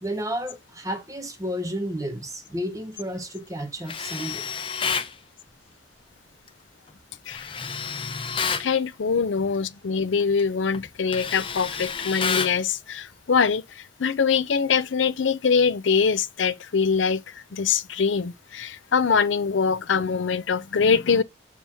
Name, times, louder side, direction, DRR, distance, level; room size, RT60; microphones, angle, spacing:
voice 1, 0.0-4.5 8.1-8.3, equal, 20° right, 0.7 m, -32 dB
Tools, 3.9-5.1 7.3-8.7 10.2-10.4 10.7-12.6, left 6 dB, 30° left, 0.6 m, -29 dB
voice 2, 8.6-21.2, left 5 dB, 85° left, 0.5 m, -23 dB
7.1 x 2.9 x 5.7 m
head